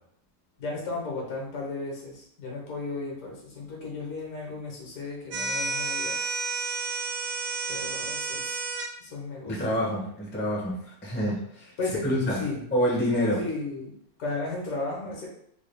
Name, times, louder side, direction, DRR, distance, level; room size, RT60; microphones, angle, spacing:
voice 1, 0.6-6.3 7.7-8.6 9.0-9.8 11.8-12.6 13.4-13.9 14.2-15.3, left 3 dB, 70° left, -1 dB, 1.5 m, -35 dB
sound 1, 5.3-8.9, right 3 dB, 60° right, 0.9 m, -31 dB
voice 2, 9.5-11.7 12.0-12.4 12.7-13.4, equal, 10° left, -4 dB, 0.5 m, -27 dB
3.7 x 2.3 x 3.3 m, 0.70 s
omnidirectional pair, 1.7 m